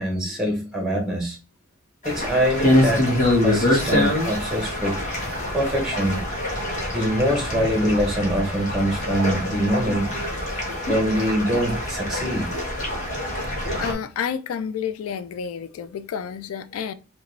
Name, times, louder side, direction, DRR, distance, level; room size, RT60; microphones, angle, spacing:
voice 1, 0.0-1.4 2.0-3.1 3.4-5.0 5.5-6.2 6.9-10.1 10.9-12.5, equal, 5° right, 0.8 m, -24 dB
sound 1, 2.0-13.9, left 1 dB, 35° left, 1.3 m, -25 dB
voice 2, 13.8-16.9, left 7 dB, 85° left, 0.3 m, -30 dB
4.8 x 2.3 x 3.1 m
head